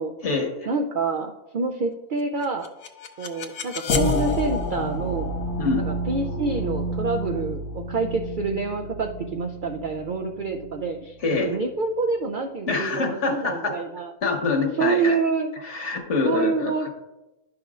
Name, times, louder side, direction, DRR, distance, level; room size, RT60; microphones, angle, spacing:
voice 1, 0.7-2.7 3.2-5.3 5.8-14.1 14.7-15.5 16.2-16.9, right 4 dB, 65° right, 4 dB, 0.5 m, -27 dB
Deep Cympact, 2.4-11.4, left 1 dB, 75° left, 1.2 m, -30 dB
voice 2, 12.7-13.7 14.2-15.2 15.6-16.7, left 4 dB, 60° left, 2 dB, 1.5 m, -25 dB
11.0 x 6.1 x 2.4 m, 0.96 s
omnidirectional pair, 1.4 m